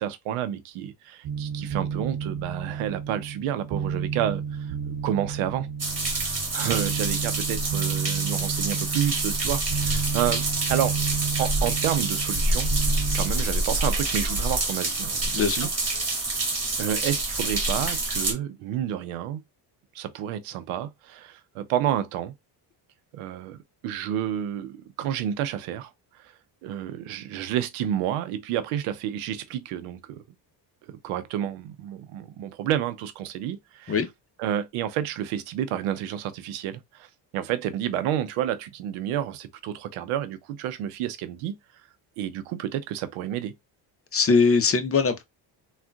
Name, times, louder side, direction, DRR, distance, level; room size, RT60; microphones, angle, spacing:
voice 1, 0.0-5.7 6.1-11.0 11.4-12.7 13.1-15.7 16.8-19.4 19.9-22.3 23.1-25.9 26.2-26.3 26.6-30.2 30.9-34.0 34.4-37.1 37.3-41.6 42.2-43.5, right 11 dB, 85° right, 0.7 m, -30 dB
sound 1, 1.2-13.3, right 7 dB, 55° right, 0.8 m, -31 dB
sound 2, 5.8-18.3, right 2 dB, 30° right, 1.6 m, -27 dB
voice 2, 15.3-15.7 33.9-34.1 44.1-45.2, left 4 dB, 30° left, 0.7 m, -21 dB
3.6 x 2.4 x 2.2 m
supercardioid pair, 80°, 49 cm